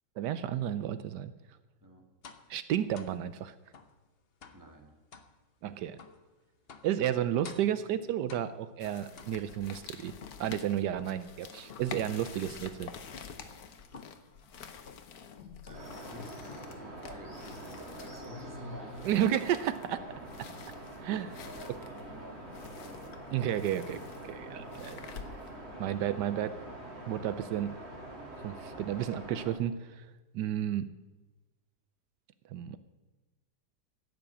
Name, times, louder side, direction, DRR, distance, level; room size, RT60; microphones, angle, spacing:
voice 1, 0.2-1.3 2.5-3.5 5.6-6.0 6.8-10.1 10.4-12.9 19.0-20.0 21.0-21.3 23.3-24.0 24.2-25.0 25.8-26.5 27.1-27.8 28.4-30.1 30.3-30.8 32.5-32.8, right 11 dB, 80° right, 13 dB, 1.2 m, -32 dB
sound 1, 2.2-2.5 2.9-3.2 3.7-4.0 4.4-4.7 5.1-5.3 6.0-6.2 6.7-7.0 7.4-7.8 8.3-8.7 9.2-9.7 10.2-11.3 11.7-12.1 12.4-12.8 13.1-13.4 13.9-14.3 14.9-15.2 15.7-16.2 16.4-16.9, left 5 dB, 45° left, 0.9 m, -51 dB
voice 2, 4.5-4.9 15.6-19.2 19.9-20.4 20.9-23.2, equal, 10° right, 2 dB, 1.7 m, -49 dB
sound 2, 8.8-25.7, left 6 dB, 65° left, 1.4 m, -48 dB
sound 3, 15.7-29.5, right 1 dB, 35° right, 2.9 m, -45 dB
15.5 x 6.0 x 8.5 m, 1.2 s
omnidirectional pair, 1.8 m